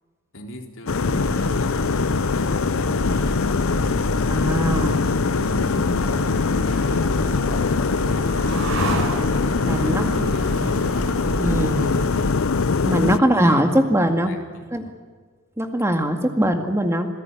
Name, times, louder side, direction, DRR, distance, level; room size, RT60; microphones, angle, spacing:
voice 1, 0.3-3.4 7.1-8.7 9.8-10.9 13.2-13.8 14.2-14.9, equal, 70° left, 3 dB, 3.9 m, -39 dB
sound 1, 0.9-13.2, left 4 dB, 85° left, 0.7 m, -22 dB
sound 2, 1.0-12.3, equal, 50° right, 3.5 m, -31 dB
voice 2, 4.3-5.0 9.6-10.4 11.4-12.0 12.8-14.3 14.7-14.9 15.6-17.1, equal, 15° right, 6 dB, 2.0 m, -21 dB
sound 3, 5.4-12.8, right 1 dB, 70° right, 5.1 m, -33 dB
27.5 x 16.5 x 9.9 m, 1.5 s
head